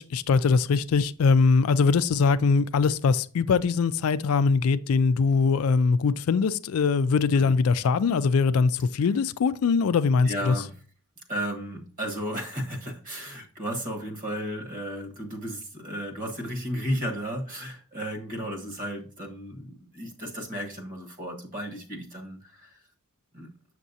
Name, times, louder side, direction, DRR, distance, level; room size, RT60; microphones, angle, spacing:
voice 1, 0.0-10.5, left 5 dB, 75° left, 0.4 m, -22 dB
voice 2, 10.2-10.8 11.3-22.8 23.3-23.5, equal, 40° right, 1.4 m, -34 dB
7.2 x 6.6 x 2.7 m
head